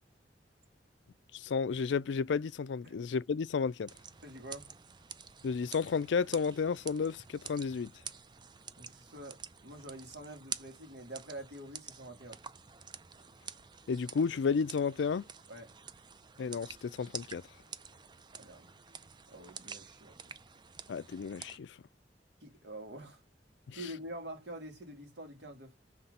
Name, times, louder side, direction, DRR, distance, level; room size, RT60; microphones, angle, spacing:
voice 1, 1.3-3.9 5.4-7.9 13.9-15.2 16.4-17.4 20.9-21.8 23.7-23.8, left 5 dB, 85° left, 0.4 m, -32 dB
sound 1, 3.9-21.6, right 6 dB, 25° right, 0.4 m, -49 dB
voice 2, 4.2-4.7 8.8-12.4 15.5-15.7 18.3-18.7 19.3-20.3 22.4-23.2 23.7-25.8, right 1 dB, 70° right, 2.2 m, -46 dB
5.7 x 3.3 x 5.3 m
head